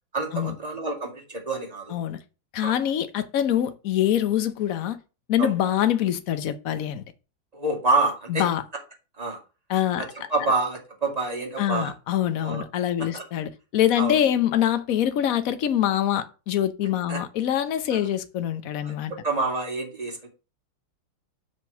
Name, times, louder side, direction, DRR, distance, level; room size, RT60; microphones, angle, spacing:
voice 1, 0.1-2.0 2.6-2.7 5.4-5.5 7.5-8.4 9.2-9.4 10.0-11.9 12.4-12.6 13.1-13.2 14.0-14.2 17.1-17.2 17.9-18.1 18.8-20.3, right 3 dB, 20° right, 2.3 m, -27 dB
voice 2, 2.5-5.0 5.3-7.0 8.3-8.6 9.7-10.0 11.6-19.1, left 11 dB, 55° left, 1.0 m, -24 dB
6.4 x 5.2 x 6.9 m
omnidirectional pair, 2.3 m